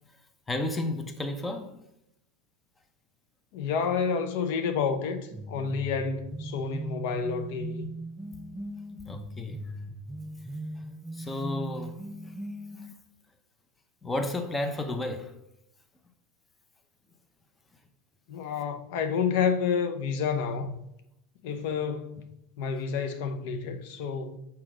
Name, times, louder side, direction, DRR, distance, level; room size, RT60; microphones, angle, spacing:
voice 1, 0.5-1.8 9.0-9.7 11.1-12.3 14.0-15.3, left 2 dB, 15° left, 0.8 m, -32 dB
voice 2, 3.5-7.9 18.3-20.7 21.4-22.3 22.6-24.4, left 6 dB, 65° left, 0.7 m, -29 dB
sound 1, 5.3-12.9, right 1 dB, 20° right, 0.4 m, -39 dB
5.9 x 4.4 x 4.9 m
supercardioid pair, 115°, 0 cm